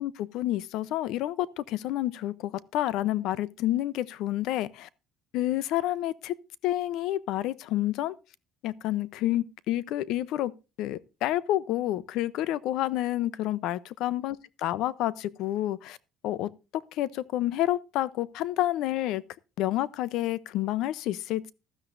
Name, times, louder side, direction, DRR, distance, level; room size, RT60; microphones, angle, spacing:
voice 1, 0.0-4.9 5.3-6.3 6.6-8.1 8.6-10.5 10.8-16.0 16.2-19.2 19.6-21.5, left 14 dB, 70° left, 0.6 m, -29 dB
15.5 x 12.5 x 2.6 m
cardioid pair, 155°, 0 cm